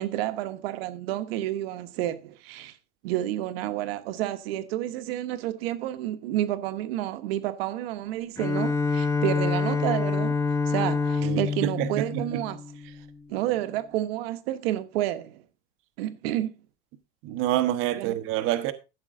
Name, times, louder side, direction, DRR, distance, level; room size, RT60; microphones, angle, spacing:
voice 1, 0.0-2.8 3.0-10.3 10.7-12.6 13.3-15.4 16.0-16.5 18.0-18.2, right 13 dB, 60° right, 1.2 m, -30 dB
Bowed string instrument, 8.4-13.1, left 4 dB, 10° left, 0.8 m, -27 dB
voice 2, 11.2-12.4 17.2-18.7, right 13 dB, 40° right, 1.2 m, -27 dB
14.0 x 7.5 x 3.7 m
supercardioid pair, 160°, 34 cm